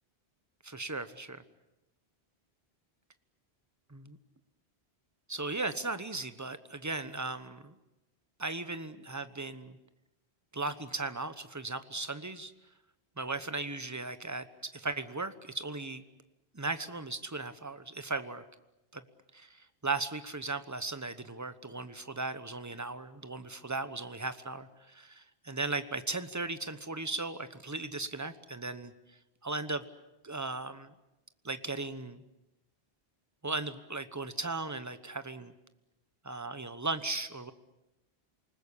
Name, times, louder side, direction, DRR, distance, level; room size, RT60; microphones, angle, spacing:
voice 1, 0.6-1.4 3.9-4.2 5.3-7.7 8.4-9.8 10.5-12.5 13.2-16.0 16.5-18.4 18.9-19.0 19.3-19.5 19.8-28.9 29.4-29.8 30.2-30.9 31.4-32.2 33.4-35.5 36.2-37.5, right 3 dB, 15° right, 11 dB, 1.0 m, -37 dB
28.0 x 20.0 x 8.5 m, 0.97 s
omnidirectional pair, 1.1 m